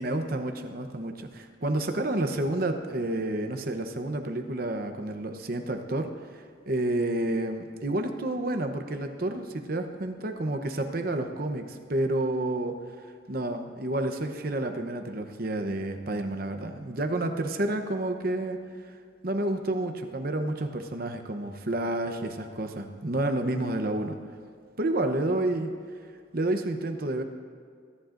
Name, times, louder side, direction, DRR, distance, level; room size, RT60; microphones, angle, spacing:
voice 1, 0.0-12.8 13.3-18.6 19.2-24.2 24.8-25.7 26.3-27.2, right 1 dB, 50° right, 6 dB, 0.8 m, -30 dB
24.0 x 10.5 x 2.6 m, 2.1 s
head